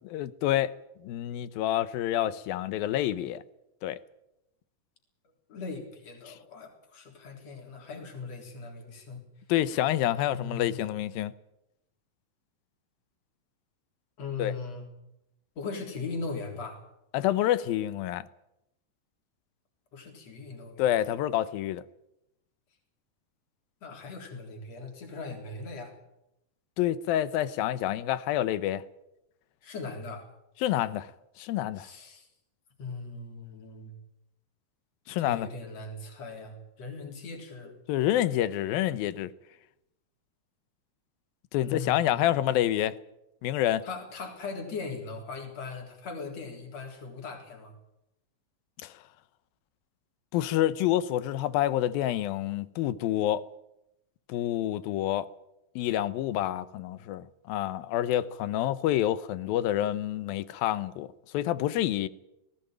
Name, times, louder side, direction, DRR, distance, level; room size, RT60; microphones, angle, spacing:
voice 1, 0.0-3.4 3.8-4.0 6.3-6.4 9.5-11.3 14.4-14.5 17.1-18.3 20.8-21.8 26.8-28.8 30.6-31.1 31.4-31.9 35.1-35.5 37.9-39.3 41.5-43.0 43.4-43.8 48.8-49.0 50.3-53.5 54.3-55.3 55.8-61.1 61.3-62.1, left 13 dB, 80° left, 2.7 m, -28 dB
voice 2, 5.5-9.2 10.2-10.8 14.2-14.9 15.6-16.8 19.9-20.9 23.8-25.9 29.6-30.3 31.8-32.3 32.8-33.9 35.2-37.7 41.6-42.3 43.8-47.7, left 4 dB, 45° left, 4.7 m, -39 dB
19.0 x 17.5 x 9.1 m
omnidirectional pair, 4.2 m